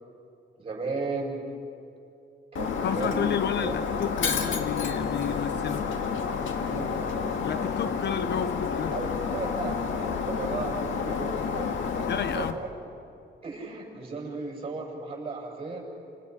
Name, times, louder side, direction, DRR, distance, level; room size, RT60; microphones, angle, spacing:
voice 1, 0.6-1.4 2.5-3.7 6.6-7.1 8.9-12.7 13.4-15.9, right 3 dB, 30° right, -2 dB, 7.2 m, -35 dB
Shatter, 2.5-12.5, left 6 dB, 80° left, 2.0 m, -30 dB
voice 2, 2.8-5.8 7.4-8.9 12.1-12.6, left 8 dB, 60° left, 12 dB, 0.8 m, -31 dB
29.5 x 27.5 x 6.0 m, 2.6 s
wide cardioid pair, 150°, 20 cm